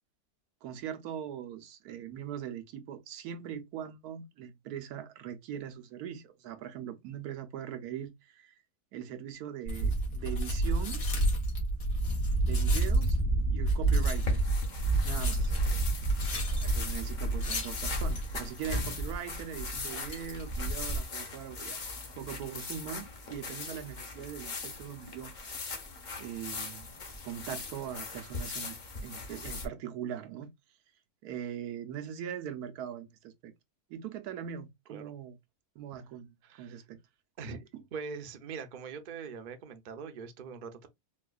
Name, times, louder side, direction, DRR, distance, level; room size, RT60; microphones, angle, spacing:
voice 1, 0.6-8.5 8.9-11.0 12.4-13.2 13.4-14.4 15.0-15.5 16.6-21.8 22.2-25.3 26.2-26.9 27.2-28.8 29.0-30.5 31.2-33.5 33.9-35.4 35.8-37.0 37.7-37.8, right 9 dB, 85° right, 1.2 m, -41 dB
sound 1, 9.6-21.0, right 2 dB, 70° left, 1.7 m, -29 dB
sound 2, 14.1-29.7, left 3 dB, 40° left, 0.7 m, -40 dB
voice 2, 36.4-36.8 37.4-40.9, right 5 dB, 50° right, 0.6 m, -43 dB
4.3 x 2.4 x 2.3 m
omnidirectional pair, 1.6 m